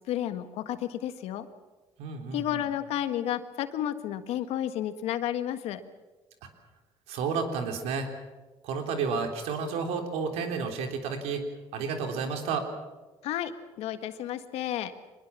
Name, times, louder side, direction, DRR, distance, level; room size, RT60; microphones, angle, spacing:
voice 1, 0.1-1.5 2.3-5.8 13.2-13.5 13.8-14.9, left 11 dB, 80° left, 10 dB, 1.7 m, -31 dB
voice 2, 2.0-2.7 7.1-8.1 8.6-11.4 11.7-12.6, right 5 dB, 85° right, 4 dB, 3.6 m, -31 dB
24.0 x 20.5 x 7.4 m, 1.2 s
cardioid pair, 90°, 11 cm